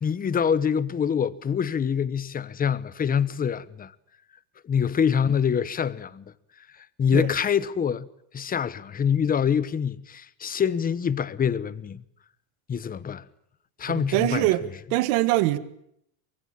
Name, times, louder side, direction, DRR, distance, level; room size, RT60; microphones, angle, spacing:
voice 1, 0.0-3.9 4.6-6.2 6.8-8.1 8.3-12.0 12.7-13.3 13.8-14.5, left 7 dB, 20° left, 1.0 m, -25 dB
voice 2, 13.9-14.6 14.9-15.6, right 17 dB, 70° right, 1.9 m, -23 dB
24.5 x 23.0 x 9.0 m
cardioid pair, 150°, 47 cm